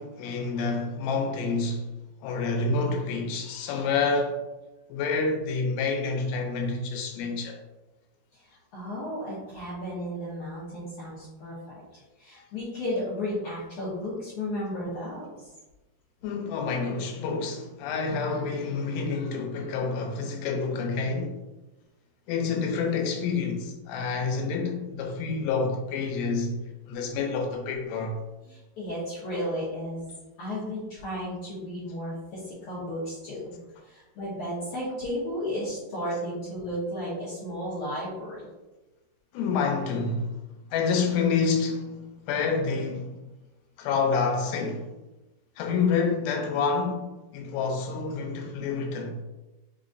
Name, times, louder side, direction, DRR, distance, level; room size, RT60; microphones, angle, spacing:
voice 1, 0.0-1.9 2.2-4.4 4.9-7.6 16.2-21.4 22.3-26.6 26.9-28.2 39.3-40.4 40.7-43.2 43.8-44.9 45.6-49.2, left 4 dB, 85° left, 2.8 m, -28 dB
voice 2, 8.3-15.5 28.5-30.1 30.4-33.5 33.8-38.5, equal, 65° left, 2.1 m, -34 dB
6.1 x 3.0 x 2.6 m
omnidirectional pair, 4.8 m